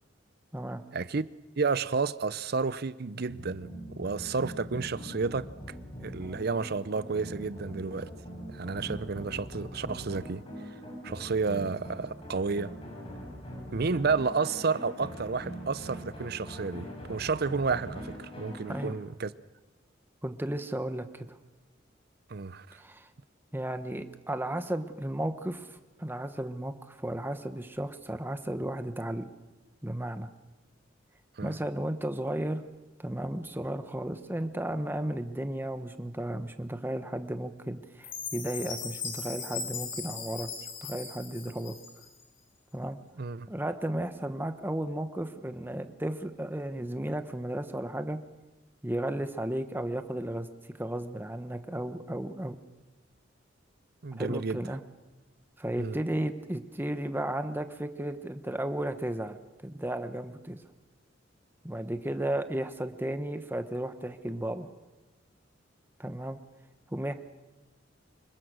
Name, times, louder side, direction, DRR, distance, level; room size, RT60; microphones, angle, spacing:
voice 1, 0.9-1.3 1.6-5.5 6.0-8.1 8.5-10.4 11.0-12.7 13.7-19.3 22.3-22.8 31.4-31.6 43.2-43.5 54.0-54.6 55.8-56.0, right 4 dB, 55° right, 0.6 m, -31 dB
sound 1, 3.3-19.0, equal, 30° left, 5.6 m, -42 dB
voice 2, 20.2-21.4 22.7-23.1 23.5-25.7 26.0-29.3 29.8-30.3 31.4-32.6 33.0-40.5 40.8-41.7 42.7-43.0 43.5-48.2 48.8-50.5 50.8-52.6 54.2-54.8 55.6-59.4 59.6-60.6 61.6-64.7 66.0-66.4 66.9-67.1, right 1 dB, 10° right, 1.1 m, -34 dB
Chime, 38.0-42.2, left 5 dB, 80° left, 6.1 m, -39 dB
25.5 x 21.5 x 6.3 m
head